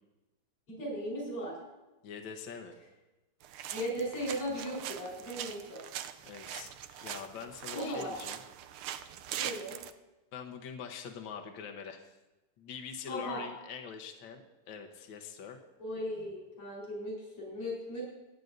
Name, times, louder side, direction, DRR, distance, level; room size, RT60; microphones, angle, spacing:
voice 1, 0.7-1.6 3.7-5.8 7.7-8.1 9.4-9.8 13.1-13.4 15.8-18.0, equal, 85° left, -5 dB, 5.1 m, -37 dB
voice 2, 2.0-2.8 6.2-8.4 10.3-12.1 12.6-15.6, left 6 dB, 65° left, 3 dB, 1.7 m, -44 dB
sound 1, 3.4-9.9, right 10 dB, 80° right, 1.5 m, -42 dB
26.5 x 9.3 x 2.6 m, 1.1 s
omnidirectional pair, 2.4 m